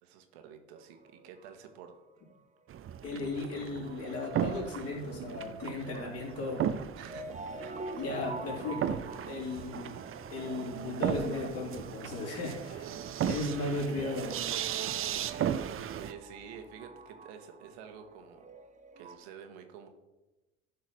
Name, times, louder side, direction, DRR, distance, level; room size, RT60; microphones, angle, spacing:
voice 1, 0.0-1.9 7.0-7.8 8.1-8.2 13.7-14.3 15.5-18.5 19.0-19.9, right 7 dB, 80° right, 6 dB, 1.5 m, -50 dB
sound 1, 0.7-1.9 2.2-2.4 2.7-4.8 6.3-19.2, right 3 dB, 25° right, 1.1 m, -48 dB
sound 2, 2.7-16.1, right 9 dB, 40° right, 0.7 m, -36 dB
voice 2, 3.0-6.8 8.0-10.0 10.3-12.9 13.2-14.3, left 3 dB, 50° left, -3 dB, 3.7 m, -36 dB
12.5 x 4.7 x 6.5 m, 1.1 s
hypercardioid pair, 70°, 32 cm